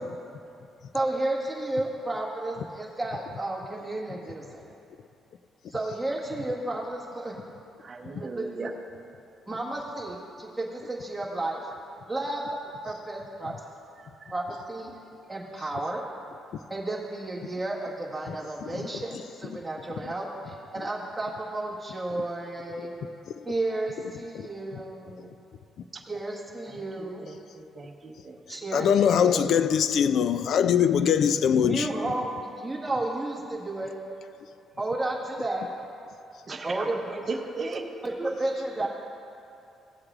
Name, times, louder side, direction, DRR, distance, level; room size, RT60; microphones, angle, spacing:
voice 1, 0.9-4.6 5.7-7.3 8.2-8.5 9.5-11.6 12.1-12.4 12.8-13.5 14.3-14.9 15.3-16.0 16.7-22.9 23.4-25.3 26.0-27.2 28.5-29.4 31.6-33.9 34.8-35.7 36.6-37.4 38.0-38.9, right 2 dB, 5° right, 1.6 m, -32 dB
voice 2, 7.8-8.7 14.0-14.3 25.9-26.0 26.6-26.8 27.2-28.4 28.7-28.9 36.5-37.0 37.3-37.8, right 4 dB, 30° right, 0.9 m, -37 dB
voice 3, 28.7-31.9, left 8 dB, 65° left, 0.4 m, -22 dB
16.5 x 7.8 x 2.5 m
cardioid pair, 125°, 0 cm